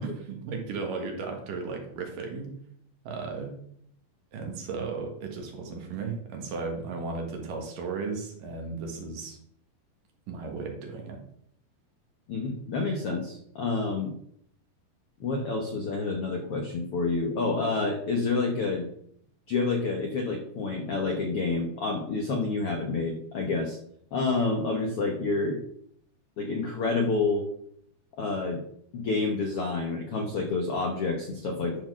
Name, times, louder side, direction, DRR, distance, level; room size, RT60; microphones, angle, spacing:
voice 1, 0.0-2.5 3.0-3.5 4.3-9.4 10.3-11.2, right 4 dB, 65° right, 2 dB, 3.1 m, -35 dB
voice 2, 12.3-14.1 15.2-18.9 19.5-23.8 24.1-25.6 26.4-27.4 28.2-28.6 28.9-31.8, left 3 dB, 70° left, 3 dB, 1.3 m, -28 dB
11.5 x 4.5 x 6.1 m, 0.67 s
omnidirectional pair, 4.3 m